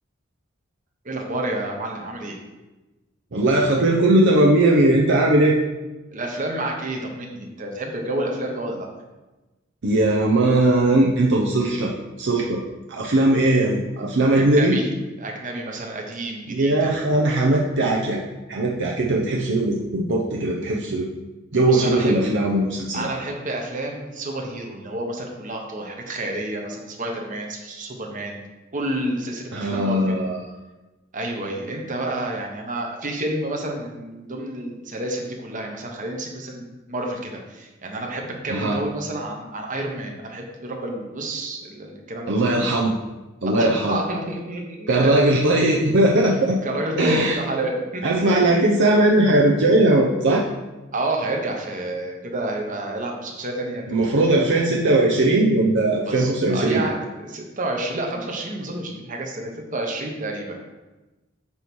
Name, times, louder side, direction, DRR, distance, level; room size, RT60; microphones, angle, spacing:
voice 1, 1.0-2.4 6.1-8.9 14.3-14.9 15.2-17.1 21.6-22.2 22.9-28.4 28.7-30.2 31.1-42.3 43.4-45.3 46.6-48.4 50.9-54.4 56.1-60.6, right 1 dB, 40° right, 1 dB, 1.2 m, -29 dB
voice 2, 3.3-5.6 9.8-12.6 12.9-14.8 16.5-18.2 18.5-21.1 21.5-23.1 29.5-30.4 38.5-38.8 42.3-42.9 43.4-44.0 44.9-46.6 47.0-47.4 48.0-50.4 53.9-56.8, right 1 dB, 60° right, -2 dB, 0.7 m, -19 dB
8.7 x 3.1 x 6.1 m, 1.1 s
head